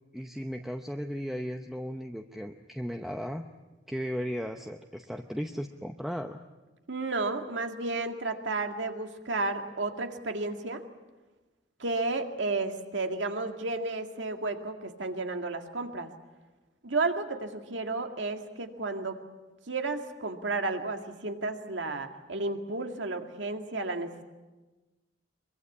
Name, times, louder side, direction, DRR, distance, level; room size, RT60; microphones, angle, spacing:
voice 1, 0.1-3.5 3.9-6.4, equal, ahead, 4 dB, 0.8 m, -36 dB
voice 2, 6.9-10.8 11.8-16.1 16.8-19.2 19.7-24.2, right 3 dB, 80° right, 5 dB, 2.0 m, -32 dB
23.5 x 23.5 x 8.5 m, 1.2 s
head